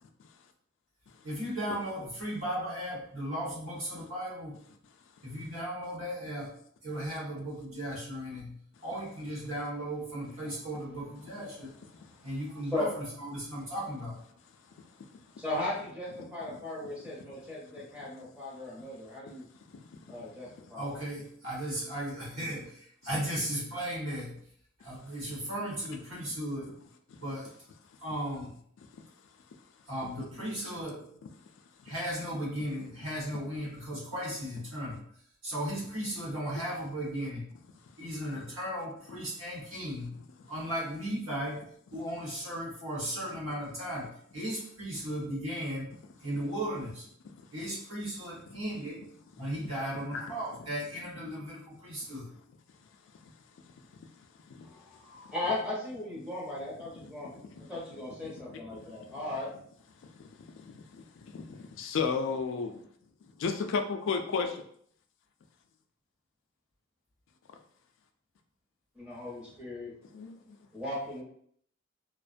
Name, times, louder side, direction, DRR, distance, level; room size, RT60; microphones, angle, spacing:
voice 1, 1.2-4.6 5.2-6.5 6.8-8.5 8.8-11.7 12.2-14.2 20.8-24.3 24.8-26.7 27.2-27.5 28.0-28.6 29.9-31.0 31.8-35.0 35.4-37.4 38.0-40.1 40.5-41.6 41.9-45.9 46.2-47.0 47.5-49.0 49.4-52.3, equal, 80° right, 1.2 m, -36 dB
voice 2, 15.4-19.5 20.1-21.0 54.6-57.3 57.7-59.5 68.9-69.9 70.7-71.2, left 2 dB, 5° right, 0.7 m, -37 dB
voice 3, 16.2-16.6 17.1-17.2 17.8-17.9 19.7-19.8 20.2-20.3 27.1-27.2 28.8-29.0 30.0-30.5 30.8-30.9 36.1-36.2 38.3-38.4 39.1-39.2 40.2-40.3 48.5-48.6 49.0-49.1 49.4-50.3 51.2-51.8 53.2-53.3 53.9-54.7 56.2-56.3 56.9-57.7 58.2-59.1 60.2-62.7 63.4-64.5 70.1-70.6, left 5 dB, 60° left, 0.3 m, -37 dB
2.4 x 2.1 x 2.5 m
head